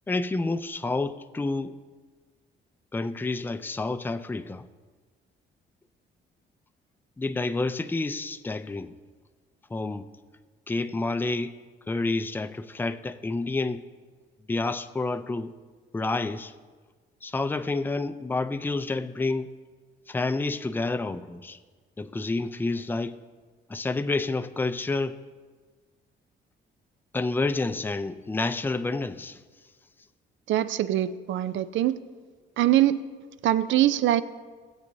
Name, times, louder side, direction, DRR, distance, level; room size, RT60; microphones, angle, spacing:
voice 1, 0.1-1.7 2.9-4.7 7.2-8.9 9.7-10.1 10.7-11.6 11.9-13.8 14.5-15.5 15.9-16.5 17.2-19.5 20.1-21.6 22.0-23.2 23.7-25.2 27.1-29.4, left 3 dB, 10° left, 0.4 m, -29 dB
voice 2, 30.5-32.0 32.6-33.0 33.4-34.2, right 13 dB, 70° right, 0.5 m, -23 dB
16.5 x 8.2 x 2.7 m
cardioid pair, 90°, 20 cm